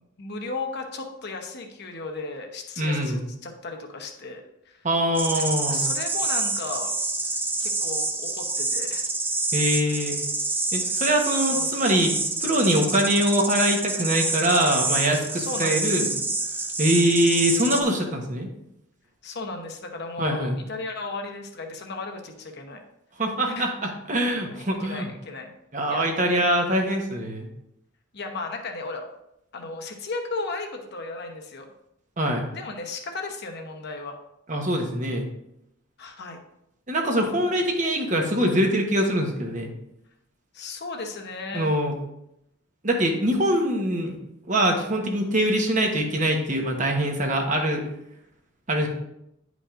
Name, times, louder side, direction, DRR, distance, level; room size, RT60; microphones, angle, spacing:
voice 1, 0.0-4.9 5.3-6.9 7.6-9.0 10.8-11.0 11.4-11.8 15.3-16.1 19.2-22.8 23.5-23.7 24.5-25.5 25.9-26.4 28.1-29.1 29.5-31.7 32.5-34.2 36.0-36.4 40.5-41.7, left 3 dB, 50° left, 3 dB, 0.9 m, -35 dB
voice 2, 2.8-3.2 4.8-5.9 9.5-10.2 10.7-12.1 12.4-16.1 16.8-18.5 20.2-20.6 23.2-25.1 25.7-27.5 32.2-32.5 34.5-35.3 36.9-39.7 41.5-41.9 42.8-44.2 44.5-47.8 48.7-48.9, right 1 dB, 35° right, 2 dB, 1.1 m, -23 dB
sound 1, 5.1-17.8, right 3 dB, 10° right, 0.5 m, -27 dB
10.0 x 5.1 x 2.5 m, 0.82 s
head